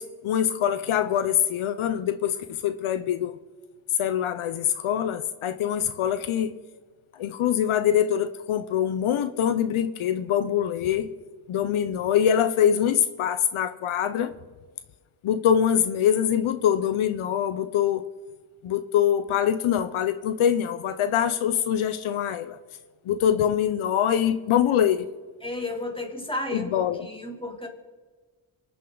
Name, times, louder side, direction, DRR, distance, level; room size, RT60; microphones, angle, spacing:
voice 1, 0.0-3.3 4.0-6.5 7.2-11.1 11.5-14.3 15.2-18.0 18.6-22.6 23.1-25.1 26.5-27.1, left 9 dB, 80° left, 11 dB, 0.8 m, -24 dB
voice 2, 25.4-27.7, left 2 dB, 10° left, 2 dB, 3.3 m, -33 dB
26.5 x 9.7 x 3.9 m, 1.4 s
cardioid pair, 70°, 48 cm